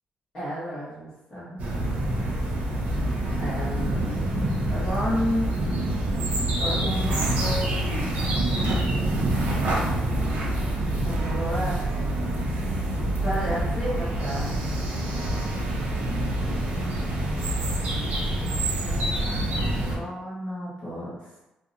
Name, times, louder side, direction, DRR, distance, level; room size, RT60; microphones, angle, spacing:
voice 1, 0.3-2.0 3.4-4.2 4.7-5.5 6.6-7.9 10.8-11.8 13.2-14.5 18.7-21.2, equal, 25° left, -11 dB, 0.9 m, -32 dB
sound 1, 1.6-20.0, right 1 dB, 60° right, 0.5 m, -26 dB
2.7 x 2.0 x 2.5 m, 0.95 s
cardioid pair, 155°, 3 cm